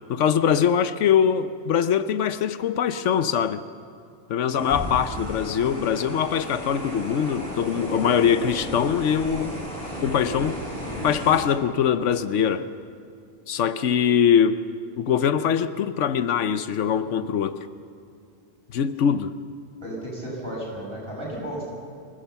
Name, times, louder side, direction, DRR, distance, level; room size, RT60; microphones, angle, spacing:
voice 1, 0.1-3.6 4.3-9.6 10.0-10.6 11.0-12.7 13.5-14.6 15.0-17.6 18.7-19.3, left 8 dB, 80° left, 12 dB, 1.1 m, -22 dB
sound 1, 4.5-11.4, equal, 5° left, 6.6 m, -34 dB
voice 2, 19.8-21.6, right 1 dB, 50° right, -4 dB, 6.6 m, -33 dB
25.0 x 15.5 x 7.0 m, 2.4 s
omnidirectional pair, 1.2 m